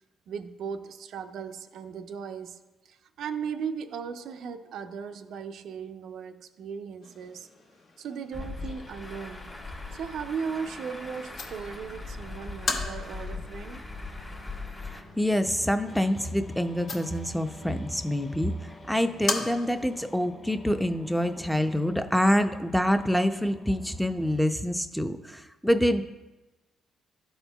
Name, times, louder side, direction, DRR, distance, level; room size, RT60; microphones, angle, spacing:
voice 1, 0.3-2.6 2.9-7.5 8.0-9.5 9.9-13.9, right 6 dB, 75° right, 0.4 m, -37 dB
sound 1, 7.0-20.0, left 3 dB, 60° left, 1.2 m, -40 dB
Truck, 8.3-15.0, left 3 dB, 20° left, 1.1 m, -40 dB
sound 2, 8.4-24.4, left 1 dB, 35° left, 1.4 m, -49 dB
voice 2, 14.9-18.5 18.9-26.0, equal, ahead, 0.5 m, -26 dB
12.5 x 4.4 x 2.3 m
cardioid pair, 90°, 0 cm